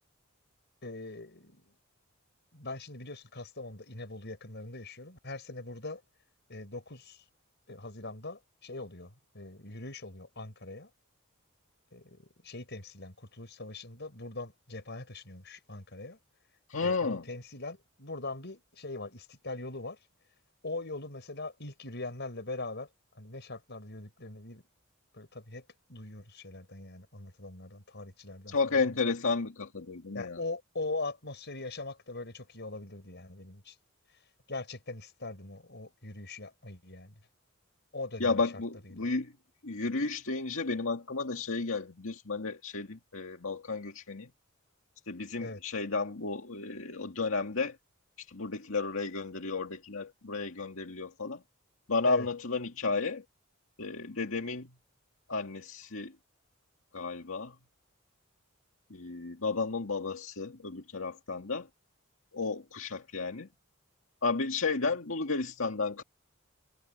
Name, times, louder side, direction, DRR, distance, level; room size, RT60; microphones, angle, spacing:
voice 1, 0.8-1.7 2.5-6.0 6.5-7.2 7.7-10.9 11.9-16.2 16.8-20.0 20.6-22.9 23.2-24.6 25.1-25.6 25.9-29.0 30.1-33.7 34.5-37.1 37.9-38.4 38.8-39.1 45.4-45.6 52.0-52.3, left 2 dB, 55° left, 5.6 m, -41 dB
voice 2, 16.7-17.2 28.5-30.4 38.2-39.3 39.6-44.3 45.1-47.7 48.3-51.4 51.9-53.2 53.8-54.7 55.3-56.1 56.9-57.5 58.9-61.7 62.3-63.5 64.2-66.0, left 4 dB, 80° left, 2.1 m, -32 dB
head